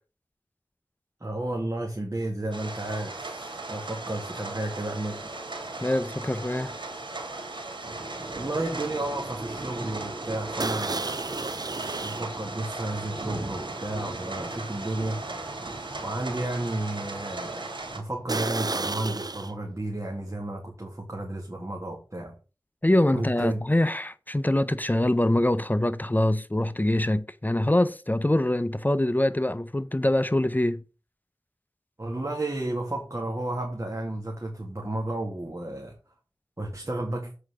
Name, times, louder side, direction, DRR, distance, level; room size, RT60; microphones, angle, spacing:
voice 1, 1.2-5.3 8.3-11.4 12.0-15.2 16.0-17.7 17.9-22.3 23.1-23.6 32.0-36.0 36.6-37.3, right 1 dB, 40° right, 2.3 m, -32 dB
sound 1, 2.5-18.0, right 2 dB, 80° right, 2.9 m, -36 dB
sound 2, 3.4-3.7 3.9-8.6 8.8-9.1 9.5-9.6 10.6-12.3 12.9-13.0 13.6-13.7 14.2-14.3 18.3-19.5, right 3 dB, 55° right, 0.6 m, -33 dB
voice 2, 5.8-6.7 22.8-30.8, left 1 dB, 20° left, 0.6 m, -24 dB
7.9 x 4.8 x 6.5 m
wide cardioid pair, 45°, 8 cm